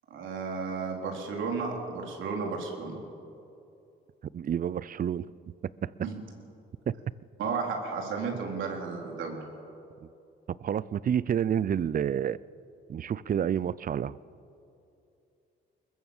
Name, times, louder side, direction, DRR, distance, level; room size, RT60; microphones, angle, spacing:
voice 1, 0.1-3.0 6.0-6.1 7.4-9.4, right 5 dB, 80° right, 1 dB, 4.1 m, -33 dB
voice 2, 4.3-5.3 5.6-5.9 6.9-7.0 10.0-10.1 10.6-12.4 12.9-14.2, right 9 dB, 45° right, 20 dB, 0.6 m, -29 dB
21.5 x 21.0 x 7.3 m, 2.7 s
cardioid pair, 90°, 20 cm